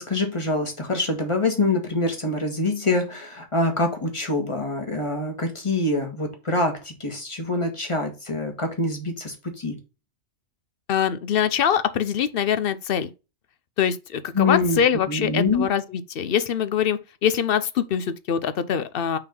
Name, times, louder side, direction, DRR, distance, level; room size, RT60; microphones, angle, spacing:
voice 1, 0.0-9.8 14.3-15.7, left 2 dB, 25° left, 1.5 m, -25 dB
voice 2, 10.9-13.1 13.8-19.2, left 8 dB, 60° left, 0.7 m, -23 dB
5.7 x 3.7 x 5.1 m
omnidirectional pair, 1.3 m